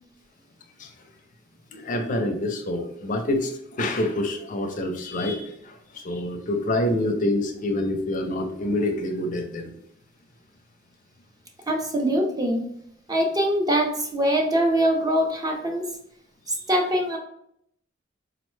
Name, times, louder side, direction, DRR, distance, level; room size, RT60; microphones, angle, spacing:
voice 1, 1.7-9.7, left 1 dB, 45° left, 5 dB, 0.4 m, -27 dB
voice 2, 11.7-12.7 13.1-15.9 16.5-17.2, equal, 20° right, 1 dB, 0.5 m, -23 dB
3.8 x 2.1 x 3.1 m, 0.72 s
head